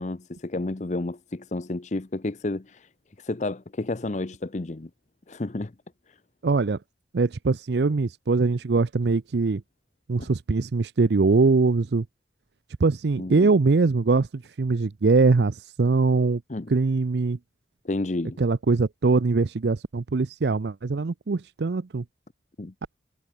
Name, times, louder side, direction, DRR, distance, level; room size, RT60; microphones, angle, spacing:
voice 1, 0.0-2.9 3.2-4.9 5.3-5.7 6.1-6.2 10.2-10.3 13.2-13.5 16.5-16.7 17.8-18.4 22.6-22.7, left 2 dB, 40° left, 0.7 m, -31 dB
voice 2, 6.4-6.8 7.1-9.6 10.1-12.0 12.8-16.4 16.7-17.4 18.4-22.0, right 3 dB, 65° right, 0.5 m, -22 dB
head